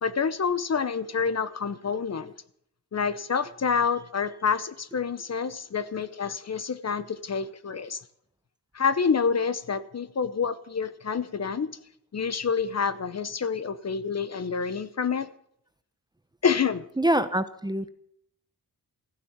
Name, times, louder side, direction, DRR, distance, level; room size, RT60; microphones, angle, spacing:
voice 1, 0.0-2.3 2.9-8.0 8.7-11.8 12.1-15.3 16.4-16.9, left 6 dB, 40° left, 14 dB, 0.8 m, -28 dB
voice 2, 17.0-17.9, right 1 dB, 10° right, 11 dB, 0.7 m, -25 dB
15.0 x 10.5 x 7.1 m, 0.68 s
wide cardioid pair, 150°, 38 cm